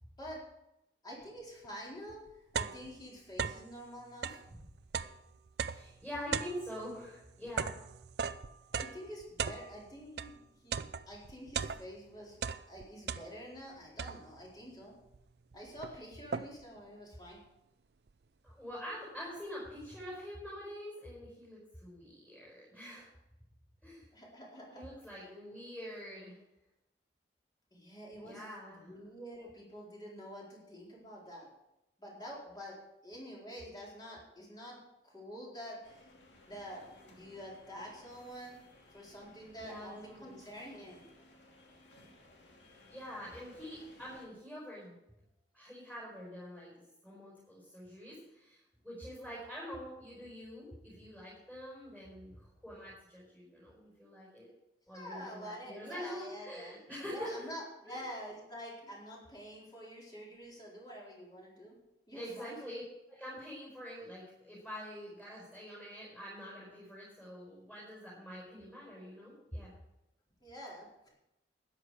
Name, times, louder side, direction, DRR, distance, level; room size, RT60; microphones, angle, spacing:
voice 1, 1.0-2.2 2.5-4.6 8.7-10.4 10.6-12.4 12.7-14.9 15.5-17.4 24.1-24.8 27.7-28.4 28.7-31.5 32.0-32.8 33.0-36.0 36.5-38.6 38.9-41.1 54.9-56.8 57.1-61.7 62.1-62.6 70.4-71.1, equal, 25° left, -4 dB, 4.2 m, -47 dB
sound 1, 1.6-1.7 2.1-3.8 4.1-10.4 10.7-12.1 12.4-13.6 14.0-14.5 15.1-15.2 15.5-16.8, right 6 dB, 65° right, 0.5 m, -39 dB
voice 2, 5.6-7.7 18.4-23.1 23.8-24.1 24.7-26.4 28.2-28.9 39.6-40.4 42.9-45.0 45.5-46.7 47.0-54.5 54.9-57.5 57.8-58.0 62.1-62.8 63.1-69.7, equal, 10° left, -6 dB, 5.1 m, -45 dB
sound 2, 35.8-44.3, left 2 dB, 90° left, 2.6 m, -60 dB
13.0 x 10.5 x 5.0 m, 0.90 s
head